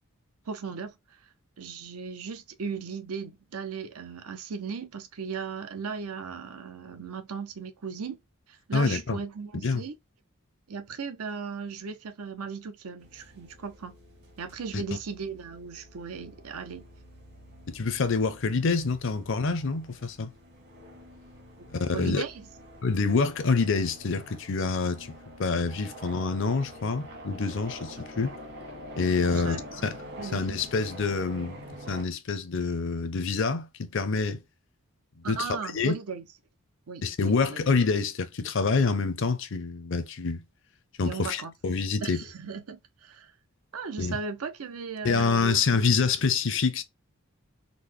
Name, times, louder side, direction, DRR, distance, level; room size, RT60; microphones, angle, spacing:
voice 1, 0.5-1.2 1.6-8.2 8.5-9.9 10.7-14.0 14.4-16.8 21.9-22.4 29.3-30.6 35.2-36.2 36.9-37.6 41.0-41.5 42.0-43.3 43.7-46.1, right 5 dB, 80° right, 0.6 m, -37 dB
voice 2, 8.7-9.2 9.6-9.8 14.7-14.8 17.7-20.3 21.7-22.2 22.8-28.3 29.0-29.6 29.8-30.0 30.3-31.6 31.9-34.4 35.3-35.9 37.0-40.4 41.0-42.2 44.0-44.2 45.0-46.8, left 4 dB, 55° left, 0.5 m, -27 dB
sound 1, 13.0-32.0, equal, 50° right, 1.3 m, -46 dB
3.7 x 2.1 x 3.0 m
head